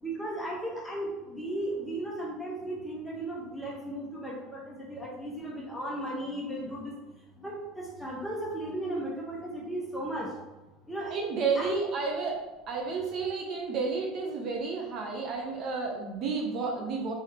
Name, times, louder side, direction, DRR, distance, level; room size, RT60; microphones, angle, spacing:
voice 1, 0.0-6.9 7.4-10.3 10.9-11.2 11.6-11.8, right 1 dB, 5° left, -3 dB, 1.0 m, -35 dB
voice 2, 11.1-12.4 12.7-17.1, right 4 dB, 45° right, 1 dB, 0.7 m, -31 dB
3.5 x 3.5 x 2.9 m, 1.1 s
cardioid pair, 135°, 0 cm